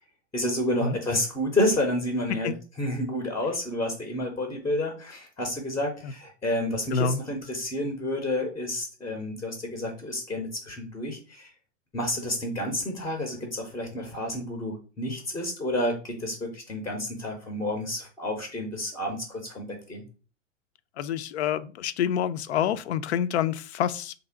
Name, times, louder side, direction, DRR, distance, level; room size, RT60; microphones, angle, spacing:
voice 1, 0.3-2.5 2.8-11.5 11.9-20.0, left 1 dB, 10° left, 0.6 m, -30 dB
voice 2, 21.0-24.1, left 8 dB, 60° left, 0.4 m, -27 dB
3.3 x 2.6 x 4.4 m
figure-of-eight pair, 100°, 38 cm